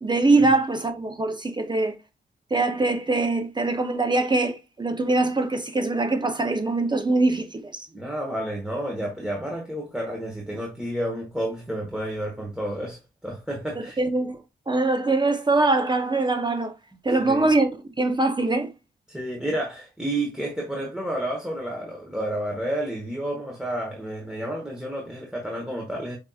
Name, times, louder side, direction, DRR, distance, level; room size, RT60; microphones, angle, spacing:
voice 1, 0.0-2.0 2.5-7.9 13.8-14.4 14.7-16.7 17.0-17.7 18.0-18.7, right 2 dB, 25° right, 0.5 m, -23 dB
voice 2, 7.9-14.0 17.2-17.4 19.1-26.2, right 1 dB, 5° right, 1.1 m, -30 dB
5.3 x 2.6 x 2.3 m
cardioid pair, 80°, 20 cm